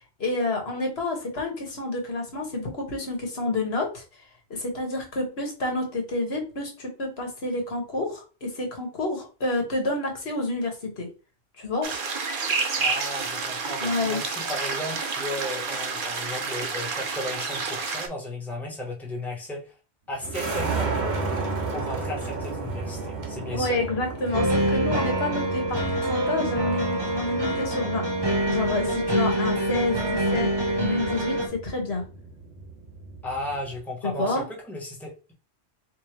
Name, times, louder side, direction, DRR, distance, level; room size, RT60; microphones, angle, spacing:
voice 1, 0.2-4.0 4.5-11.1 11.6-11.9 13.8-14.2 23.5-25.8 26.1-28.1 28.5-30.5 30.7-32.0 34.0-34.4, left 2 dB, 70° left, 2 dB, 1.6 m, -29 dB
sound 1, 11.8-18.1, right 4 dB, 55° right, 0.9 m, -29 dB
voice 2, 12.8-19.8 20.1-21.3 21.7-23.8 33.2-35.3, left 1 dB, ahead, -1 dB, 1.1 m, -35 dB
sound 2, 20.2-33.8, right 3 dB, 80° right, 1.2 m, -34 dB
sound 3, 24.3-31.5, right 1 dB, 25° right, 1.0 m, -25 dB
3.3 x 3.0 x 4.4 m, 0.32 s
omnidirectional pair, 1.1 m